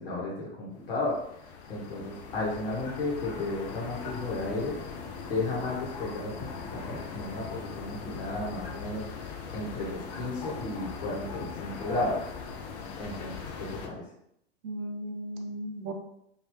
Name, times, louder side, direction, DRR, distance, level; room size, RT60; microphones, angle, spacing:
voice 1, 0.0-4.8 5.3-12.3 13.0-14.0, left 2 dB, 60° left, -5 dB, 1.3 m, -34 dB
sound 1, 0.7-13.9, left 5 dB, 40° left, 0.5 m, -40 dB
voice 2, 14.6-15.9, right 1 dB, 45° right, 3 dB, 0.6 m, -36 dB
2.9 x 2.8 x 3.1 m, 0.74 s
figure-of-eight pair, 95°, 34 cm